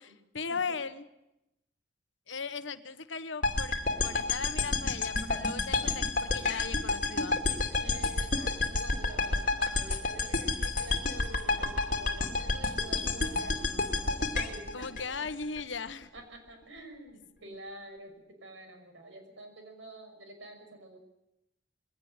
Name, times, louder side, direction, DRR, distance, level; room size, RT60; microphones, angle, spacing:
voice 1, 0.3-1.1 2.3-3.8 4.0-7.6 14.7-16.1 17.4-17.6, left 5 dB, 75° left, 12 dB, 1.3 m, -38 dB
sound 1, 3.4-15.6, left 3 dB, 45° left, 2.6 m, -30 dB
voice 2, 7.8-15.3 16.1-21.0, right 1 dB, 80° right, 5 dB, 6.0 m, -48 dB
22.0 x 17.5 x 9.7 m, 0.90 s
head